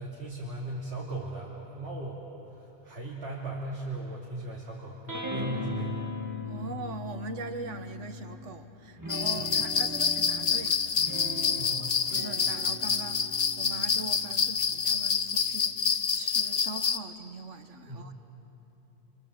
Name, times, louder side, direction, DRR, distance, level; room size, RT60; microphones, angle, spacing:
voice 1, 0.0-2.2 2.6-6.0 11.6-12.0 17.9-18.1, right 2 dB, 60° right, -5 dB, 3.1 m, -38 dB
sound 1, 5.1-8.4 9.0-15.8, left 1 dB, 15° right, 2.0 m, -39 dB
voice 2, 6.4-10.8 11.6-18.1, right 3 dB, 80° right, 8 dB, 1.5 m, -41 dB
sound 2, 9.1-17.0, left 6 dB, 40° left, 0.7 m, -28 dB
29.0 x 24.0 x 7.7 m, 3.0 s
omnidirectional pair, 1.2 m